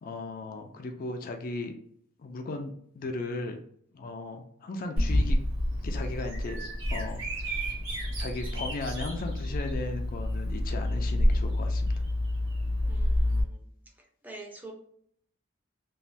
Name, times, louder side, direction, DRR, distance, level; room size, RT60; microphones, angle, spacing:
voice 1, 0.0-1.7 2.2-3.6 3.9-5.4 5.8-7.8 8.2-11.9, left 2 dB, 45° left, 5 dB, 0.4 m, -37 dB
Bird vocalization bird call bird song, 5.0-13.4, left 1 dB, 70° right, 1.2 m, -28 dB
voice 2, 12.8-13.6 14.2-14.7, right 2 dB, 10° right, 1 dB, 0.5 m, -45 dB
3.1 x 2.1 x 2.5 m, 0.65 s
head